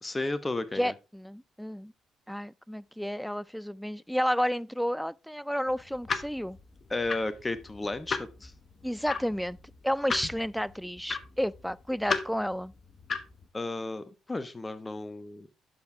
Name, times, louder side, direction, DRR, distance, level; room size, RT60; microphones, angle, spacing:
voice 1, 0.0-0.9 6.9-8.5 13.5-15.5, left 2 dB, 25° left, 1.1 m, -33 dB
voice 2, 0.7-1.9 2.3-6.6 8.8-9.6 9.8-12.7, equal, ahead, 0.4 m, -31 dB
sound 1, 5.7-13.5, left 5 dB, 45° left, 1.1 m, -37 dB
12.0 x 4.8 x 3.4 m
supercardioid pair, 55°, 0 cm